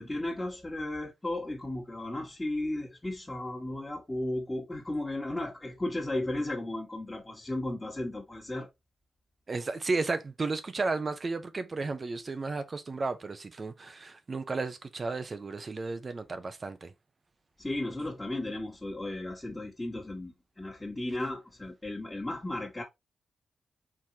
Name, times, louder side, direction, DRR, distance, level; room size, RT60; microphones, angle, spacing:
voice 1, 0.0-8.7 17.6-22.8, left 1 dB, 15° left, 1.5 m, -35 dB
voice 2, 9.5-16.9, right 3 dB, 40° right, 0.6 m, -33 dB
4.6 x 3.6 x 2.8 m
cardioid pair, 70°, 0 cm